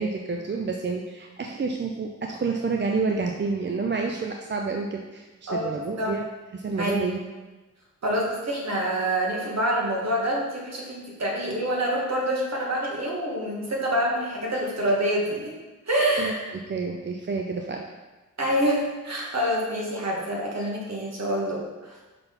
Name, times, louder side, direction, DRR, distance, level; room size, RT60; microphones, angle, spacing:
voice 1, 0.0-6.2 6.5-7.2 16.2-16.3 16.7-17.9, right 4 dB, 35° right, 2 dB, 0.6 m, -29 dB
voice 2, 5.5-6.1 6.8-7.1 8.0-15.5 15.9-16.4 18.4-22.0, equal, 55° right, -2 dB, 1.8 m, -26 dB
5.7 x 3.9 x 5.4 m, 1.2 s
cardioid pair, 65°, 33 cm